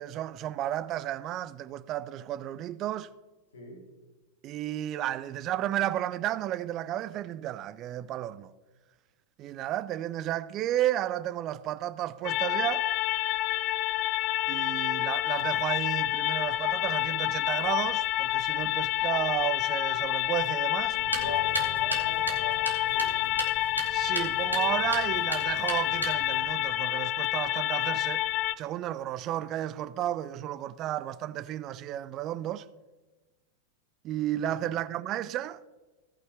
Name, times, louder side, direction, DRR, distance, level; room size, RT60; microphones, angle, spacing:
voice 1, 0.0-3.1 4.4-8.5 9.4-12.9 14.5-21.0 23.9-28.2 28.6-32.6 34.0-35.6, right 12 dB, 35° right, 0.5 m, -32 dB
voice 2, 3.5-3.9 21.0-23.2 34.5-34.7, left 1 dB, 65° left, 3.1 m, -42 dB
sound 1, 12.2-28.5, left 15 dB, 40° left, 0.4 m, -28 dB
sound 2, 20.9-26.4, right 1 dB, 90° right, 2.0 m, -36 dB
16.5 x 6.1 x 4.6 m
figure-of-eight pair, 90°, 0 cm